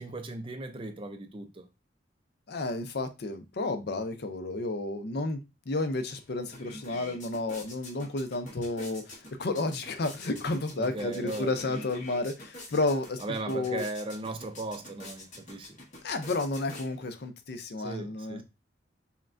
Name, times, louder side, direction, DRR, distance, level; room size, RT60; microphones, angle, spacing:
voice 1, 0.0-1.7 10.8-11.5 13.2-15.8 17.8-18.4, right 2 dB, 30° right, 0.4 m, -37 dB
voice 2, 2.5-5.4 5.7-13.2 13.5-13.8 16.0-18.4, left 2 dB, 55° left, 0.5 m, -31 dB
sound 1, 6.1-6.2 6.4-17.3, left 1 dB, 40° left, 1.1 m, -47 dB
5.7 x 2.2 x 2.5 m
head